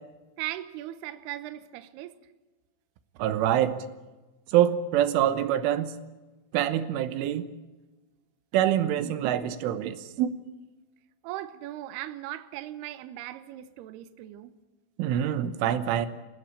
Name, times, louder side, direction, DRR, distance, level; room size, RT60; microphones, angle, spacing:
voice 1, 0.4-2.2 11.2-14.5, right 14 dB, 75° right, 2.6 m, -38 dB
voice 2, 3.2-3.8 4.5-5.9 6.5-7.5 8.5-10.3 15.0-16.1, right 11 dB, 90° right, 3.6 m, -25 dB
28.5 x 16.0 x 8.7 m
omnidirectional pair, 5.6 m